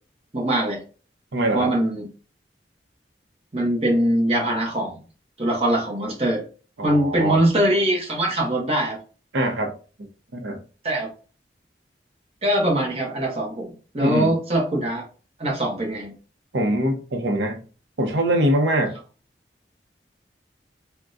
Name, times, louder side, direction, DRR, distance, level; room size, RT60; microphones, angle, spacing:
voice 1, 0.3-0.8 1.5-2.1 3.5-5.0 5.4-6.4 6.8-9.0 10.8-11.1 12.4-15.1 15.4-16.1, right 1 dB, 35° right, 0.9 m, -22 dB
voice 2, 1.3-1.7 6.8-7.4 9.3-9.7 10.3-10.6 14.0-14.4 16.5-17.6 18.0-19.0, right 1 dB, 90° right, 0.7 m, -23 dB
3.5 x 2.2 x 2.5 m
head